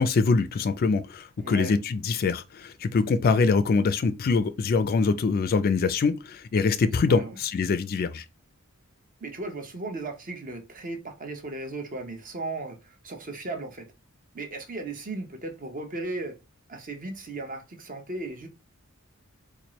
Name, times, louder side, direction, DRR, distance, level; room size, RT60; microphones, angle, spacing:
voice 1, 0.0-8.2, left 4 dB, 45° left, 0.3 m, -24 dB
voice 2, 1.4-1.8 7.1-7.4 9.2-13.9 14.3-16.4 16.7-18.5, right 2 dB, 40° right, 0.8 m, -36 dB
4.3 x 2.4 x 3.0 m
head